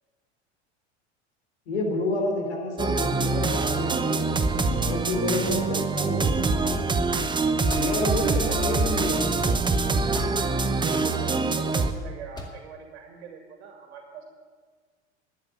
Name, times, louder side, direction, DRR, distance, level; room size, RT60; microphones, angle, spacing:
voice 1, 1.7-6.8 7.7-9.6, left 2 dB, 75° left, 2 dB, 3.7 m, -30 dB
sound 1, 2.8-11.9, right 3 dB, 15° right, 0.9 m, -24 dB
sound 2, 5.6-10.8 11.0-11.8 12.1-12.7, left 1 dB, 10° left, 2.1 m, -43 dB
sound 3, 7.8-9.8, left 3 dB, 55° left, 3.6 m, -47 dB
voice 2, 10.7-14.3, right 5 dB, 70° right, 3 dB, 2.2 m, -41 dB
12.0 x 8.4 x 9.4 m, 1.5 s
hypercardioid pair, 85°, 34 cm